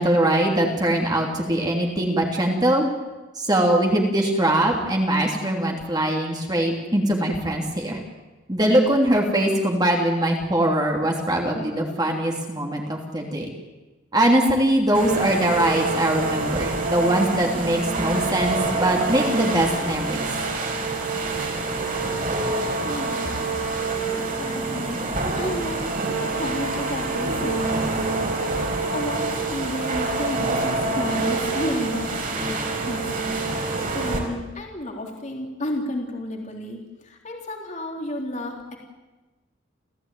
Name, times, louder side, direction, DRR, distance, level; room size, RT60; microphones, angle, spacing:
voice 1, 0.0-2.9 3.3-8.0 8.5-13.5 14.1-20.2, right 1 dB, 20° right, 0 dB, 3.1 m, -22 dB
sound 1, 14.9-34.2, right 3 dB, 45° right, 4.8 m, -26 dB
voice 2, 22.8-25.0 25.4-25.9 26.2-28.5 28.9-33.6 33.9-36.8 37.0-38.8, left 1 dB, 35° left, 1 dB, 3.6 m, -32 dB
29.5 x 15.5 x 9.2 m, 1.2 s
head